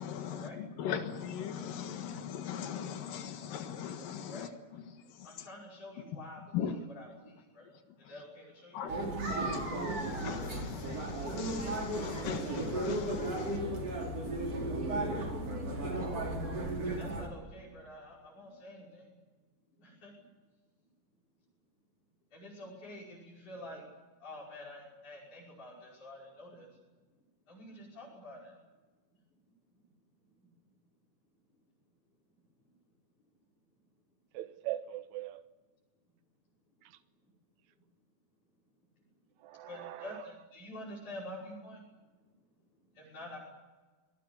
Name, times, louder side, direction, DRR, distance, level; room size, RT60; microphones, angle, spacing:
voice 1, 0.0-4.8 5.2-5.5 6.5-6.8 8.7-8.9 9.3-13.6, left 8 dB, 90° left, 3.3 m, -39 dB
voice 2, 5.2-7.1 7.5-7.6 8.1-9.0 17.0-19.1 19.8-20.1 22.3-23.8 24.2-26.7 27.5-28.5 39.7-41.8 43.0-43.4, left 1 dB, 65° left, 7.6 m, -48 dB
sound 1, 8.9-17.3, right 1 dB, 45° right, 5.5 m, -35 dB
voice 3, 34.3-35.4 39.4-40.1, right 14 dB, 65° right, 2.3 m, -40 dB
28.0 x 20.5 x 8.4 m
omnidirectional pair, 3.8 m